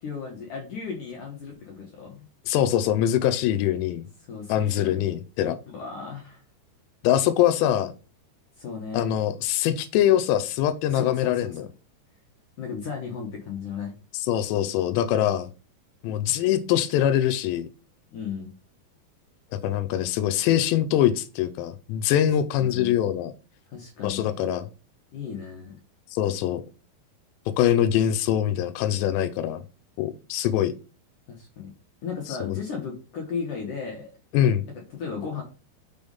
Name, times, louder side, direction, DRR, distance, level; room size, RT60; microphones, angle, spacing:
voice 1, 0.0-2.3 4.3-5.0 5.7-6.4 8.6-9.1 10.9-11.5 12.6-13.9 18.1-18.5 22.5-23.0 23.7-24.4 25.1-25.8 31.3-31.7 32.0-34.1 34.7-35.4, left 6 dB, 65° left, -1 dB, 2.1 m, -35 dB
voice 2, 2.5-4.0 4.5-5.6 7.0-7.9 8.9-11.7 14.3-15.5 16.0-17.7 19.6-23.3 24.0-24.7 26.1-26.6 27.6-29.6 30.0-30.7 32.4-32.5 34.3-34.7, left 11 dB, 90° left, 10 dB, 2.8 m, -23 dB
6.1 x 3.5 x 5.3 m, 0.34 s
omnidirectional pair, 4.9 m